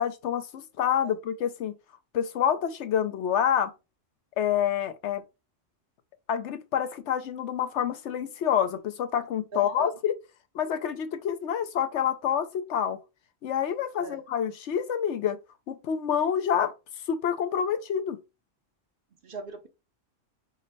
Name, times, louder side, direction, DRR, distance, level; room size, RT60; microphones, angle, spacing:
voice 1, 0.0-1.8 2.1-3.7 4.4-5.2 6.3-10.1 10.5-13.0 13.4-15.4 15.7-16.7 17.1-18.2, left 9 dB, 70° left, 0.9 m, -27 dB
voice 2, 9.5-9.9 14.0-14.2 19.2-19.7, right 3 dB, 55° right, 0.8 m, -39 dB
5.2 x 2.0 x 4.0 m
omnidirectional pair, 1.3 m